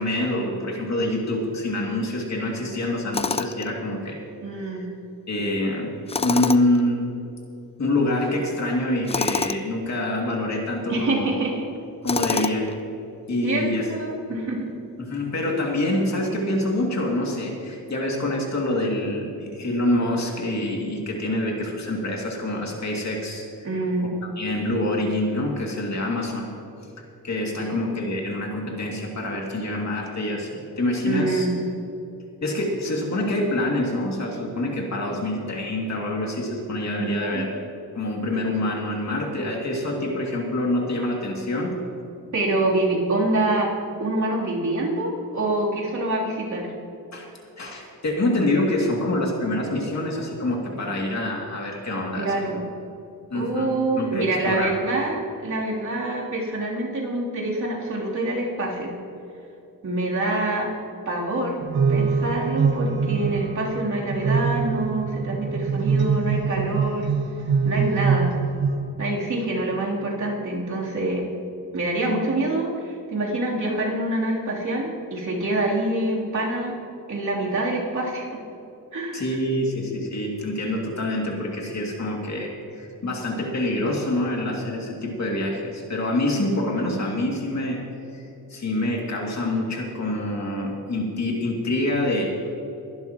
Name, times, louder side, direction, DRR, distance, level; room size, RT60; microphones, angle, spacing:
voice 1, 0.0-4.2 4.5-4.9 5.3-7.1 7.8-11.3 12.0-12.7 13.3-13.9 15.0-23.4 24.0-24.1 24.4-26.5 27.2-31.5 32.4-37.5 37.9-41.7 47.1-47.2 47.6-52.6 53.3-54.7 79.1-87.8 88.1-88.2 88.5-92.3, left 1 dB, 50° left, -1 dB, 2.6 m, -26 dB
Tools, 3.1-3.7 6.1-6.8 9.1-9.6 12.1-12.8, left 4 dB, 20° left, 0.3 m, -26 dB
voice 2, 4.4-4.9 10.9-11.7 12.3-12.5 13.4-14.7 23.6-24.1 27.7-27.9 31.0-31.5 37.0-37.5 42.3-43.7 44.0-46.7 52.2-52.6 53.3-59.0 59.8-60.7 61.1-61.6 61.9-67.0 67.6-68.4 69.0-71.2 71.7-76.7 77.1-78.3 78.9-79.2, right 2 dB, 50° right, -5 dB, 3.4 m, -26 dB
sound 1, 61.6-68.8, right 5 dB, 80° right, 1.8 m, -24 dB
22.0 x 11.5 x 3.1 m, 2.8 s
wide cardioid pair, 115°, 36 cm